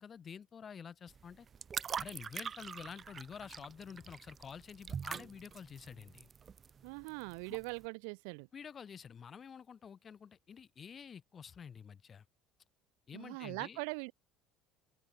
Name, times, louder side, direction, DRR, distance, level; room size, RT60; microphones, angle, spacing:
voice 1, 0.0-1.5 2.0-6.3 7.5-7.6 8.5-12.2 13.1-13.8, left 7 dB, 40° left, 6.5 m, -49 dB
sound 1, 1.1-7.8, right 6 dB, 35° right, 0.7 m, -44 dB
voice 2, 6.8-8.5 13.1-14.1, right 37 dB, 80° right, 2.3 m, -41 dB
open air
supercardioid pair, 80°, 0 cm